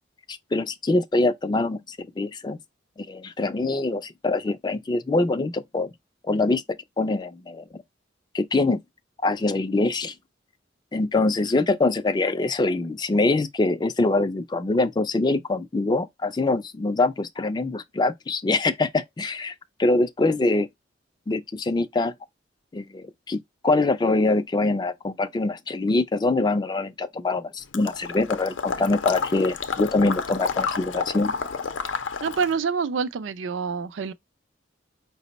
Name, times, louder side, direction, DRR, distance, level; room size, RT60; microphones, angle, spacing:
voice 1, 0.3-2.6 3.0-5.9 6.3-7.6 8.3-8.8 9.2-10.1 10.9-19.5 19.8-20.7 21.3-22.1 22.7-31.3, left 2 dB, 20° left, 0.3 m, -24 dB
Water / Liquid, 27.7-32.6, left 5 dB, 85° left, 0.5 m, -30 dB
voice 2, 32.2-34.1, right 5 dB, 75° right, 0.4 m, -26 dB
5.1 x 2.0 x 3.9 m
head